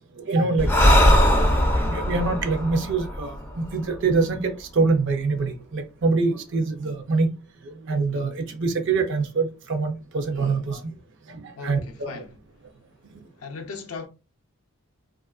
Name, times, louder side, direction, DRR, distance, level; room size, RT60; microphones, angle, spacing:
voice 1, 0.2-1.1 1.6-7.3 7.6-10.8 11.3-12.2 13.1-13.2, right 3 dB, 55° right, 0.4 m, -25 dB
Breathing, 0.6-4.1, equal, 10° left, 0.3 m, -20 dB
voice 2, 11.6-12.4 13.4-14.1, left 4 dB, 75° left, 0.5 m, -37 dB
2.8 x 2.4 x 2.3 m
head